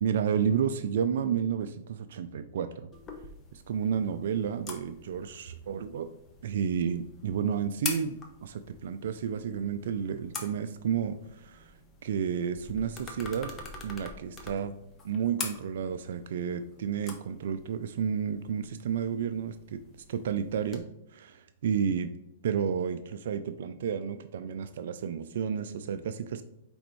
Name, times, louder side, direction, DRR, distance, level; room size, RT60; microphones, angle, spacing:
voice 1, 0.0-2.9 3.5-6.1 6.4-11.7 12.0-13.5 13.8-14.7 15.0-19.8 20.1-20.8 21.1-22.1 22.4-26.4, right 7 dB, 70° right, 10 dB, 0.3 m, -31 dB
sound 1, 2.9-20.8, left 3 dB, 25° left, 0.8 m, -45 dB
5.0 x 3.5 x 3.0 m, 0.84 s
hypercardioid pair, 125°, 0 cm